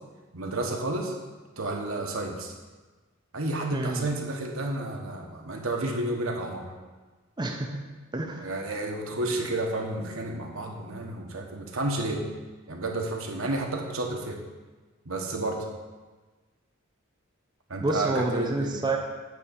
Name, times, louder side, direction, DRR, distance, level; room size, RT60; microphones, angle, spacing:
voice 1, 0.3-1.1 1.6-2.5 3.3-6.7 8.4-12.3 12.7-14.4 15.0-15.7 17.7-18.8, right 2 dB, 75° right, 1 dB, 1.2 m, -31 dB
voice 2, 3.7-4.1 7.4-7.8 8.1-8.5 17.8-19.0, right 2 dB, 20° right, 1 dB, 0.6 m, -28 dB
8.5 x 3.7 x 6.9 m, 1.3 s
head